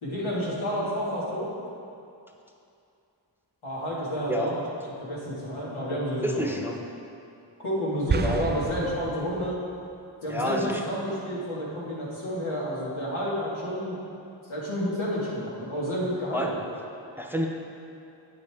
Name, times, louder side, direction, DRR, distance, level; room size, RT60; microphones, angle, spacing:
voice 1, 0.0-1.5 3.6-4.6 5.0-6.5 7.6-9.6 10.2-14.0 14.5-16.5, equal, 90° left, -7 dB, 2.2 m, -30 dB
voice 2, 6.2-6.8 8.1-8.5 10.3-10.8 16.3-16.5 17.2-17.5, equal, 5° right, 1 dB, 0.8 m, -28 dB
sound 1, 8.1-9.7, right 5 dB, 25° right, 0.4 m, -30 dB
8.6 x 7.8 x 3.6 m, 2.6 s
cardioid pair, 50°, 47 cm